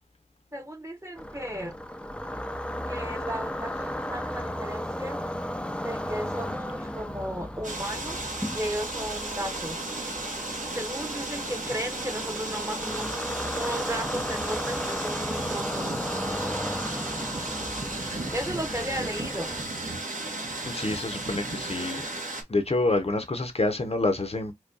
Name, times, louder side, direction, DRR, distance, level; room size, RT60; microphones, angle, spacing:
voice 1, 0.5-1.7 2.9-5.2 5.8-8.2 8.5-9.8 10.7-13.1 13.6-16.0 18.3-19.5, equal, 20° right, 0.8 m, -34 dB
sound 1, 1.2-19.6, equal, 5° left, 0.3 m, -35 dB
sound 2, 7.6-22.4, right 2 dB, 60° right, 1.0 m, -34 dB
voice 2, 20.7-22.0 22.5-24.5, left 2 dB, 45° left, 0.6 m, -27 dB
4.5 x 2.2 x 2.6 m
wide cardioid pair, 50°, 15 cm